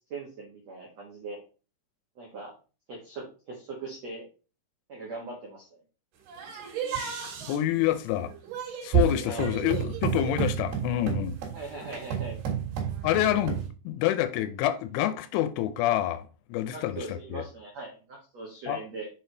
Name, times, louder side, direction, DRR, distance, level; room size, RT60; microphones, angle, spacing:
voice 1, 0.1-1.4 2.1-2.5 2.9-4.2 4.9-5.8 9.2-9.5 11.5-12.4 16.7-19.1, right 3 dB, 90° right, 1.4 m, -40 dB
sound 1, 6.3-13.7, right 8 dB, 60° right, 3.1 m, -31 dB
voice 2, 7.5-8.3 8.8-11.4 13.0-13.6 13.9-17.4 18.7-18.8, left 12 dB, 85° left, 3.0 m, -27 dB
7.0 x 4.5 x 3.9 m
omnidirectional pair, 5.5 m